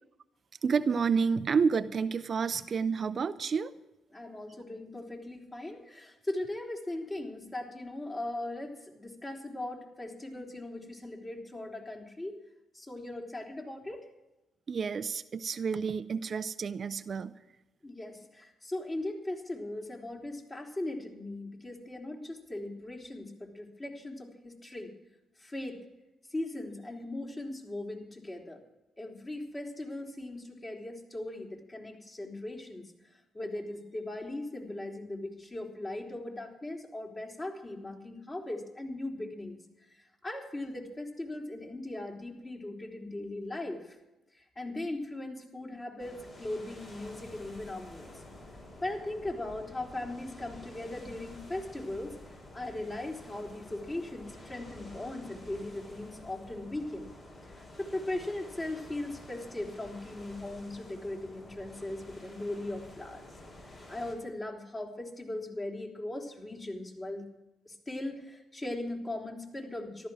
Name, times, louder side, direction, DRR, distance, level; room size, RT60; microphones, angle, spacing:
voice 1, 0.6-3.7 14.7-17.3, right 5 dB, 50° right, 12 dB, 0.6 m, -29 dB
voice 2, 4.1-12.4 12.7-14.1 17.8-24.9 25.4-25.8 26.3-28.6 29.0-32.8 33.1-39.6 39.9-44.0 44.3-48.1 48.8-52.2 52.5-57.1 57.5-63.2 63.9-67.2 67.7-70.1, left 1 dB, 30° left, 1 dB, 3.7 m, -39 dB
sound 1, 46.0-64.1, left 1 dB, 50° left, 5.5 m, -50 dB
14.0 x 12.5 x 6.3 m, 0.97 s
hypercardioid pair, 50°, 0 cm